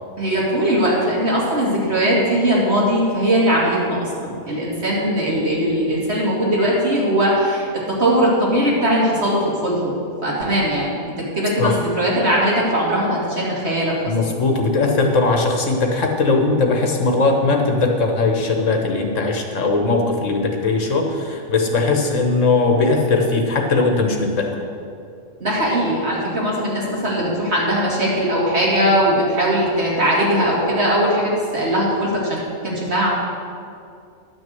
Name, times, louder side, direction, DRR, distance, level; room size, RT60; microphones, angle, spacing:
voice 1, 0.2-9.9 10.2-13.9 25.4-33.1, equal, 50° right, -5 dB, 2.6 m, -20 dB
voice 2, 14.1-24.5, left 3 dB, 60° left, 2 dB, 1.4 m, -19 dB
11.5 x 6.3 x 7.6 m, 2.5 s
omnidirectional pair, 1.5 m